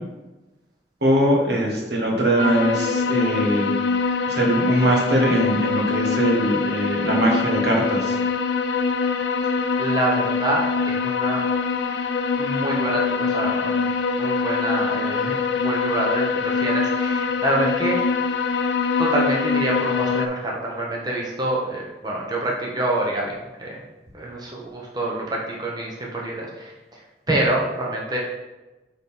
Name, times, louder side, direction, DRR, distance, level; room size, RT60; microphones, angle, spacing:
voice 1, 1.0-3.7 4.3-8.2, right 1 dB, 70° right, 0 dB, 1.5 m, -21 dB
sound 1, 2.4-20.3, left 5 dB, 85° left, 0.5 m, -24 dB
voice 2, 9.8-11.4 12.4-13.8 14.2-18.0 19.0-23.8 24.1-27.0 27.3-28.2, right 1 dB, 25° right, -2 dB, 0.9 m, -26 dB
8.8 x 4.0 x 3.6 m, 1.1 s
head